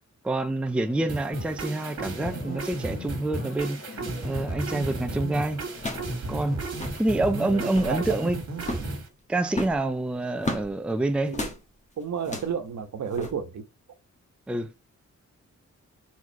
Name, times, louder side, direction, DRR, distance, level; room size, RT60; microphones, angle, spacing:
voice 1, 0.2-3.8 4.2-5.6 6.3-6.7 7.0-8.4 9.3-11.4 14.5-14.7, right 2 dB, 5° right, 0.5 m, -27 dB
sound 1, 0.7-6.6, left 4 dB, 45° left, 1.5 m, -44 dB
sound 2, 1.1-9.1, right 2 dB, 55° right, 2.0 m, -34 dB
sound 3, 5.7-6.2 6.4-6.5 6.7-7.0 7.5-8.0 8.6-8.9 9.5-10.7 11.3-11.6 12.2-12.6 13.1-13.3, left 2 dB, 25° left, 1.4 m, -34 dB
voice 2, 7.3-8.3 11.3-11.5 12.0-13.6, right 6 dB, 75° right, 1.2 m, -32 dB
4.8 x 4.0 x 5.8 m
wide cardioid pair, 180°, 29 cm